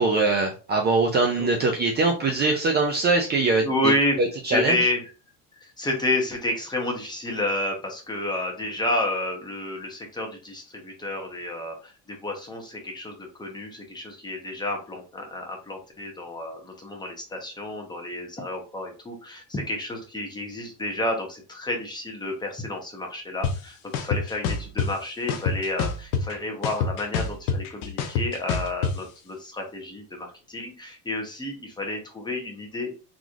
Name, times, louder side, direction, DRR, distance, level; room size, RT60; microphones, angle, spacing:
voice 1, 0.0-3.9 4.2-4.8, right 3 dB, 25° right, 1 dB, 0.5 m, -22 dB
voice 2, 3.6-4.2 4.5-5.0 5.6-32.9, left 1 dB, 10° left, 1 dB, 0.8 m, -30 dB
sound 1, 23.4-23.5 23.9-24.9 25.3-26.4 26.6-28.9, left 5 dB, 85° left, 0.8 m, -25 dB
4.0 x 3.1 x 2.4 m, 0.34 s
cardioid pair, 145°, 39 cm